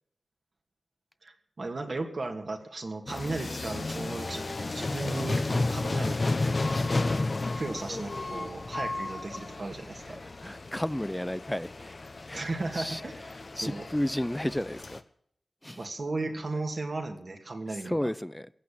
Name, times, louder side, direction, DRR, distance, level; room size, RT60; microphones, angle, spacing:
voice 1, 1.2-6.9 7.6-10.2 12.3-13.1 13.6-13.9 15.8-18.1, right 2 dB, 55° right, 4 dB, 2.6 m, -36 dB
sound 1, 3.1-15.0, left 3 dB, 50° left, 1.1 m, -33 dB
voice 2, 10.0-12.5 12.7-13.3 13.6-15.0 15.6-15.9 17.8-18.5, left 1 dB, 10° left, 17 dB, 0.6 m, -33 dB
15.5 x 8.4 x 9.0 m, 0.68 s
wide cardioid pair, 80°, 0 cm